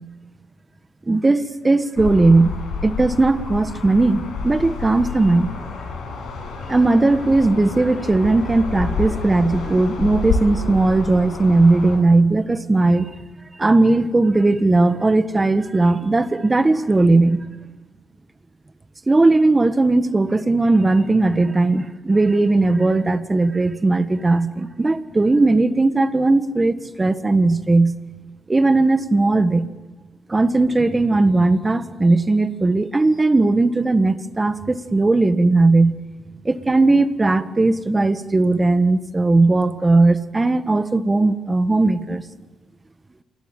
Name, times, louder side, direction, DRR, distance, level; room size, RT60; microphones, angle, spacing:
voice 1, 1.1-2.5 2.8-5.5 6.7-13.1 13.6-17.4 19.1-27.9 28.5-29.7 30.3-36.0 36.4-42.2, right 2 dB, 20° right, 12 dB, 1.5 m, -17 dB
sound 1, 2.0-12.0, left 4 dB, 70° left, 7.2 m, -29 dB
27.5 x 20.5 x 9.1 m, 1.1 s
cardioid pair, 90°, 0 cm